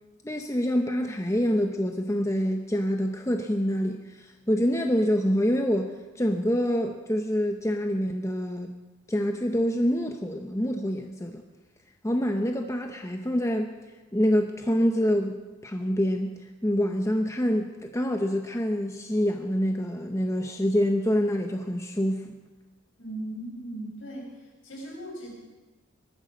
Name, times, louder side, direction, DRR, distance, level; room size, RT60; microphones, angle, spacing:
voice 1, 0.2-8.7 9.1-11.4 12.0-13.7 14.1-16.3 16.6-22.3, equal, 15° left, 4 dB, 0.8 m, -26 dB
voice 2, 23.0-24.3 24.6-25.4, right 1 dB, 65° left, -2 dB, 6.6 m, -38 dB
20.0 x 13.5 x 5.2 m, 1.2 s
head